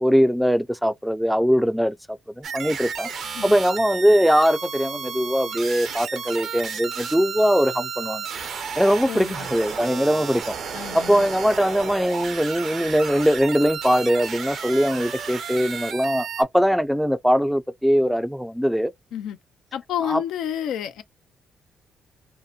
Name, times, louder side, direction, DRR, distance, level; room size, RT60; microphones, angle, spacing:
voice 1, 0.0-8.3 8.8-10.6 10.9-18.9 20.0-20.2, equal, ahead, 0.4 m, -21 dB
sound 1, 2.4-16.4, right 6 dB, 65° right, 0.6 m, -33 dB
voice 2, 9.1-9.5 10.7-11.3 19.1-19.4 19.7-21.0, left 9 dB, 85° left, 0.5 m, -30 dB
2.8 x 2.1 x 2.4 m
cardioid pair, 90°, 0 cm